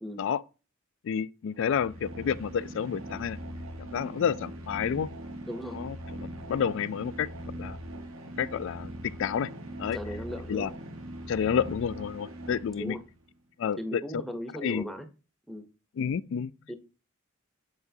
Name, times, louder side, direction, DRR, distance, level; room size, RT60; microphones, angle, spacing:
voice 1, 1.0-3.4 3.9-5.1 5.7-7.3 7.6-7.8 8.4-9.5 9.8-10.0 10.5-10.7 11.3-13.0 13.6-14.2 14.5-14.8 16.0-16.5, left 7 dB, 60° left, 0.3 m, -30 dB
sound 1, 1.5-13.2, right 1 dB, 70° right, 1.1 m, -41 dB
voice 2, 5.4-5.8 9.9-10.7 12.8-13.0 13.8-15.1 15.5-15.7 16.7-16.8, equal, ahead, 0.7 m, -37 dB
7.8 x 4.7 x 2.7 m
head